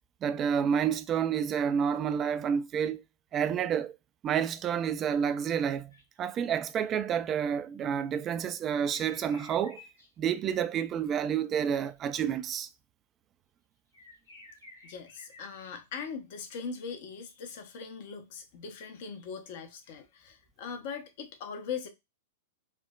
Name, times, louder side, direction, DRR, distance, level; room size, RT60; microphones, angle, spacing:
voice 1, 0.2-3.0 3.3-3.9 4.2-5.9 6.2-9.8 10.2-12.7, right 8 dB, 30° right, 0.3 m, -29 dB
sound 1, 5.9-6.2 8.9-10.1 10.4-11.1 13.9-16.1, left 2 dB, 85° left, 1.8 m, -53 dB
voice 2, 14.8-21.9, left 6 dB, 50° left, 0.7 m, -40 dB
4.4 x 2.0 x 2.3 m
figure-of-eight pair, 100°, 0 cm